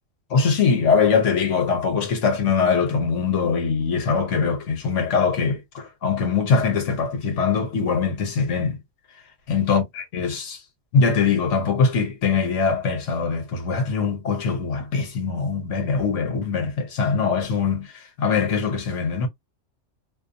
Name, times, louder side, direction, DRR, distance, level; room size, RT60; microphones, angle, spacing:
voice 1, 0.3-8.8 9.5-10.6 10.9-19.3, left 5 dB, 70° left, 1.2 m, -22 dB
2.4 x 2.2 x 2.7 m
omnidirectional pair, 1.3 m